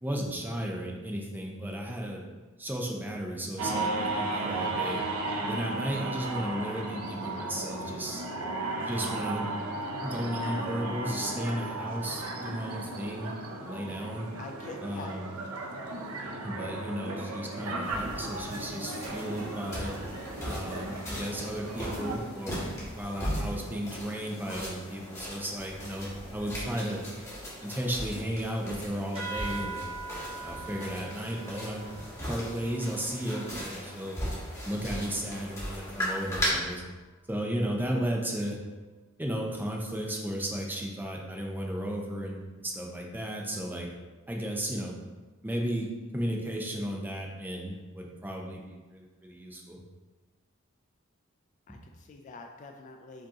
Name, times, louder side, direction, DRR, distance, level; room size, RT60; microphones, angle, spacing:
voice 1, 0.0-2.2 2.6-5.0 5.5-8.2 8.9-9.5 10.0-13.3 13.6-14.3 14.8-15.3 16.4-19.9 20.4-27.0 27.6-29.9 30.4-31.9 32.3-34.2 34.6-36.8 37.3-38.6 39.2-43.9 44.3-45.0 45.4-45.9 46.1-49.8, equal, 10° right, -1 dB, 0.6 m, -34 dB
sound 1, 3.6-22.2, right 2 dB, 85° right, 0.6 m, -35 dB
voice 2, 14.4-15.4 51.7-53.3, left 3 dB, 35° left, 4 dB, 0.3 m, -45 dB
sound 2, 17.8-36.5, equal, 15° left, 1.3 m, -38 dB
sound 3, 29.1-34.1, right 4 dB, 25° right, 1.2 m, -42 dB
5.1 x 2.8 x 3.6 m, 1.3 s
head